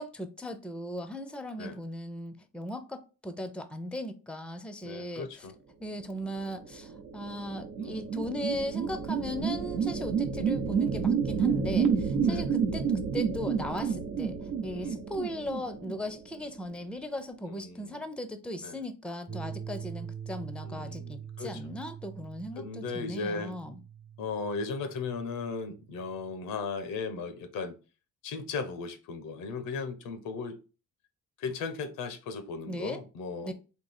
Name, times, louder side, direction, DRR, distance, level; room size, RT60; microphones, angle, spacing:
voice 1, 0.0-5.3 5.8-14.4 14.6-23.8 32.7-33.0 33.4-33.5, equal, 5° left, 0.6 m, -38 dB
voice 2, 4.8-5.5 7.8-8.1 12.2-12.5 14.7-15.0 17.5-18.0 18.6-18.8 20.6-21.6 22.5-23.5 24.2-27.8 28.2-30.6 31.4-33.5, left 4 dB, 85° left, 0.9 m, -37 dB
sound 1, 6.6-16.4, right 6 dB, 75° right, 0.9 m, -30 dB
sound 2, 19.3-26.3, right 8 dB, 35° right, 1.0 m, -44 dB
3.8 x 2.8 x 4.1 m
cardioid pair, 90°, 33 cm